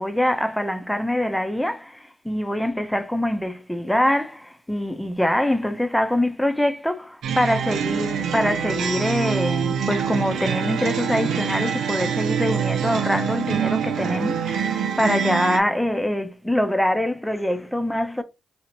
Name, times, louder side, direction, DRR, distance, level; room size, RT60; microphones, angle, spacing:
voice 1, 0.0-18.2, left 1 dB, 5° left, 0.6 m, -24 dB
sound 1, 7.2-15.6, right 7 dB, 75° right, 0.4 m, -25 dB
2.7 x 2.4 x 3.0 m
supercardioid pair, 45°, 0 cm